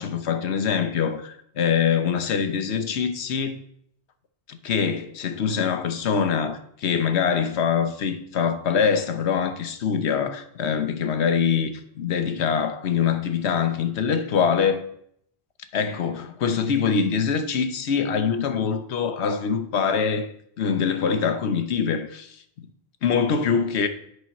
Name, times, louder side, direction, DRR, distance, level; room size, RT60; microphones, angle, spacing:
voice 1, 0.0-3.6 4.6-14.8 15.7-20.3 20.6-22.4 23.0-23.9, left 6 dB, 85° left, 1.1 m, -24 dB
8.3 x 4.1 x 5.8 m
omnidirectional pair, 1.1 m